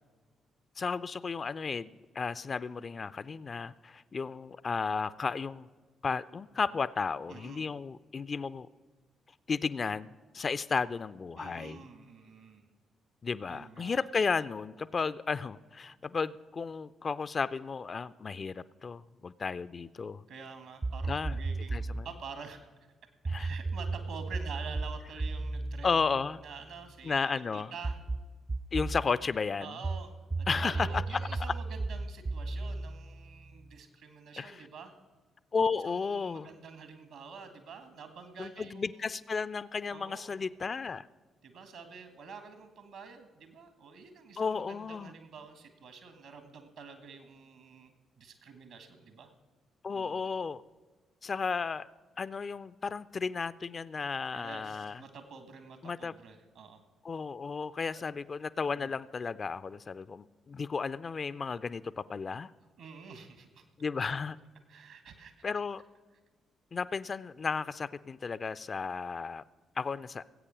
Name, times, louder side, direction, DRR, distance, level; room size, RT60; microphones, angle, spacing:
voice 1, 0.8-5.7 6.0-8.7 9.5-11.8 13.2-20.2 21.1-21.4 21.7-22.1 23.3-23.5 25.8-26.4 27.0-27.7 28.7-29.8 30.5-31.0 34.4-34.7 35.5-36.5 38.4-41.1 44.4-45.1 49.8-50.6 51.2-51.9 52.2-55.0 55.8-56.1 57.0-62.5 63.8-64.4 65.4-65.8 66.7-69.4 69.8-70.2, left 5 dB, 40° left, 15 dB, 0.4 m, -33 dB
voice 2, 7.3-7.7 11.4-12.6 13.5-14.0 20.3-22.6 23.4-28.0 29.6-34.9 35.8-39.1 39.9-40.4 41.4-49.3 49.9-50.3 54.3-56.8 57.9-58.0 58.7-58.9 62.8-63.6 64.7-65.3, right 5 dB, 65° right, 8 dB, 1.6 m, -48 dB
sound 1, 20.8-22.1 23.2-27.0 27.8-29.1 29.8-33.8, right 3 dB, 30° right, 0.4 m, -35 dB
19.5 x 8.4 x 5.1 m, 1.4 s
figure-of-eight pair, 40°, 0 cm